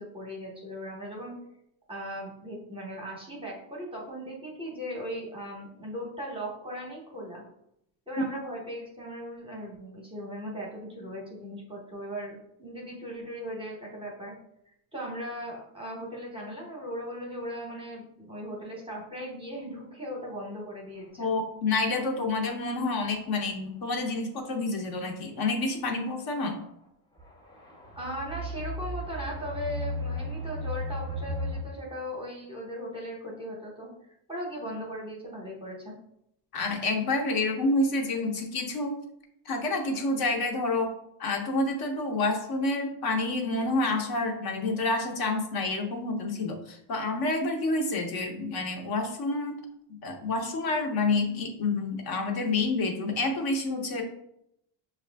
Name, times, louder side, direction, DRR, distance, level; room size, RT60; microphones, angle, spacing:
voice 1, 0.0-1.3 1.9-7.4 8.1-14.3 14.7-21.3 28.0-33.9 34.3-35.9, equal, 10° right, -2 dB, 0.8 m, -38 dB
voice 2, 21.2-26.6 36.5-38.9 39.5-40.9 41.2-49.5 50.0-54.0, left 2 dB, 50° left, 2 dB, 0.7 m, -28 dB
sound 1, 22.3-22.4 23.0-23.4 24.4-24.5 26.3-26.6 27.2-31.6, left 1 dB, 10° left, 0.4 m, -35 dB
6.0 x 2.5 x 3.3 m, 0.77 s
cardioid pair, 175°, 49 cm